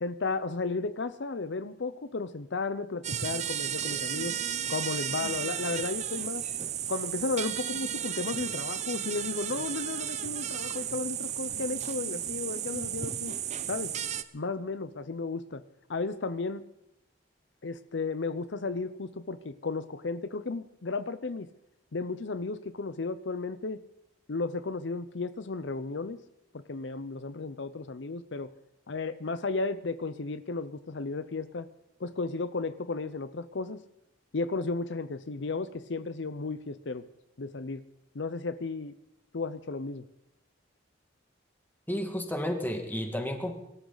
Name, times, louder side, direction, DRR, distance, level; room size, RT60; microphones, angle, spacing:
voice 1, 0.0-4.4 4.7-6.4 6.9-13.3 13.7-13.9 14.3-15.6 15.9-16.6 17.6-21.5 21.9-23.8 24.3-26.2 26.5-28.5 28.9-31.7 32.0-33.8 34.3-37.0 37.4-37.8 38.1-38.9 39.3-40.0, left 3 dB, 70° left, 13 dB, 0.7 m, -34 dB
sound 1, 3.0-14.2, right 9 dB, 40° right, 0.7 m, -34 dB
voice 2, 41.9-43.5, equal, 10° left, 4 dB, 2.0 m, -32 dB
24.0 x 13.0 x 4.0 m, 0.82 s
head